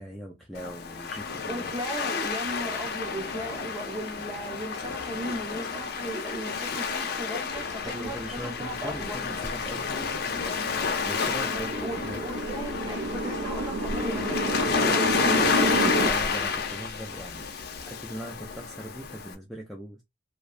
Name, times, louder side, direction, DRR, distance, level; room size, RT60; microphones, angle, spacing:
voice 1, 0.0-1.8 7.8-12.3 16.0-17.5 17.8-20.0, right 1 dB, ahead, 0.4 m, -40 dB
Waves surf, 0.5-19.3, left 5 dB, 55° left, 0.5 m, -30 dB
voice 2, 1.5-9.2 11.5-15.6, right 1 dB, 20° right, 0.8 m, -36 dB
sound 1, 8.1-16.1, right 1 dB, 65° right, 0.4 m, -31 dB
2.7 x 2.1 x 2.4 m
head